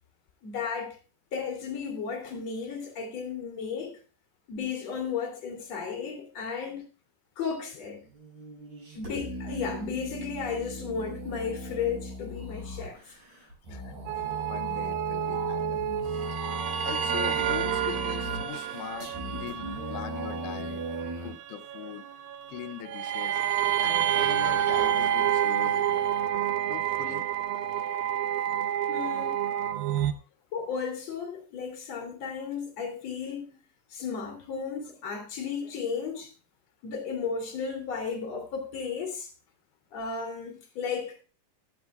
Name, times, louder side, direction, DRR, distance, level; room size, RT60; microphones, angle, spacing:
voice 1, 0.4-1.0 1.3-4.0 4.5-6.8 7.4-8.0 8.9-13.2 28.9-29.5 30.5-33.6 33.9-36.3 36.8-39.3 39.9-41.2, left 6 dB, 45° left, 2.8 m, -34 dB
sound 1, 8.0-21.3, equal, 45° right, 7.8 m, -38 dB
sound 2, 14.1-30.1, right 10 dB, 75° right, 2.3 m, -29 dB
voice 2, 14.4-16.4 16.8-20.8 21.2-22.0 22.5-23.4 23.8-26.1 26.7-27.2 28.5-29.0 29.5-29.8, left 14 dB, 90° left, 2.9 m, -42 dB
14.5 x 12.5 x 2.3 m
omnidirectional pair, 4.8 m